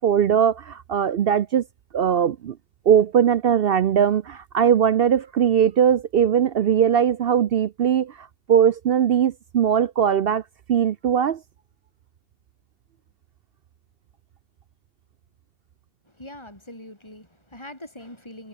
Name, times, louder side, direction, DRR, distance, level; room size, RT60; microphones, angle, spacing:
voice 1, 0.0-1.6 1.9-2.6 2.9-10.4 10.7-11.4, right 8 dB, 60° right, 0.7 m, -20 dB
voice 2, 16.0-18.5, left 1 dB, 20° left, 6.6 m, -42 dB
omnidirectional pair, 1.4 m